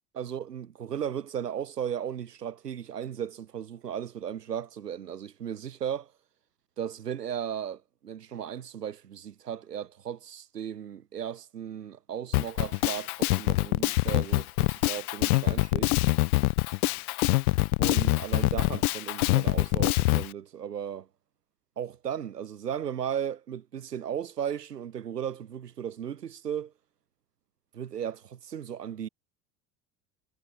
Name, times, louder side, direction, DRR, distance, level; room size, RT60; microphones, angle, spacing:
voice 1, 0.1-6.1 6.8-15.9 17.8-21.1 21.8-26.7 27.7-29.1, right 9 dB, 85° right, 3.9 m, -36 dB
Drum kit, 12.3-20.3, left 22 dB, 65° left, 5.0 m, -24 dB
hypercardioid pair, 75°, 47 cm